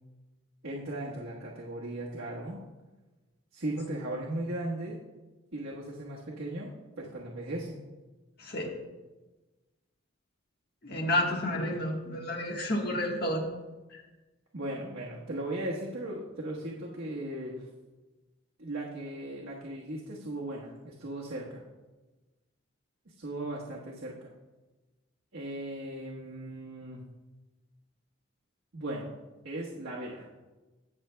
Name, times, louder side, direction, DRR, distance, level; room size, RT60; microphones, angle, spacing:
voice 1, 0.6-2.6 3.5-5.0 5.5-7.8 14.5-17.7 18.6-21.6 23.1-24.3 25.3-27.0 28.7-29.1 29.4-30.3, right 1 dB, 80° right, -4 dB, 1.2 m, -37 dB
voice 2, 8.4-8.7 10.8-13.4 13.9-14.0, left 1 dB, 50° left, 0 dB, 1.4 m, -30 dB
17.5 x 6.3 x 2.2 m, 1.2 s
head